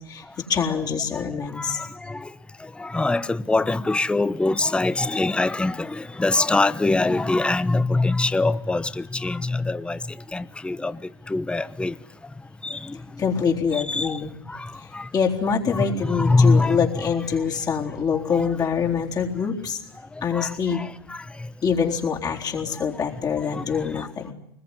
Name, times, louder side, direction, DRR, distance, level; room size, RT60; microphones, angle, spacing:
voice 1, 0.5-1.8 13.2-14.4 15.1-19.8 20.2-20.8 21.6-24.3, left 6 dB, 30° left, 3.9 m, -25 dB
voice 2, 1.1-13.2 13.7-15.1 15.7-17.4 18.1-18.5 20.0-21.5 22.6-23.1 23.4-24.1, left 3 dB, 10° left, 0.9 m, -25 dB
24.5 x 20.5 x 9.9 m
hypercardioid pair, 95°, 13 cm